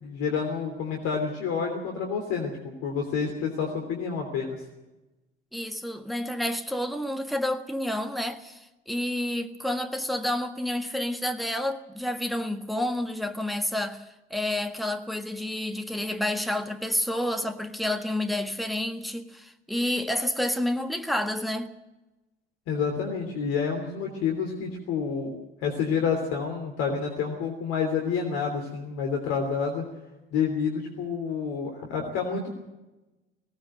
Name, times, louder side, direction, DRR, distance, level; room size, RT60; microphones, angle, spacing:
voice 1, 0.0-4.6 22.7-29.8 30.3-32.6, left 6 dB, 50° left, 3.2 m, -29 dB
voice 2, 5.5-14.0 14.3-21.7, left 1 dB, ahead, 1.6 m, -29 dB
19.5 x 17.5 x 7.7 m
figure-of-eight pair, 60°, 31 cm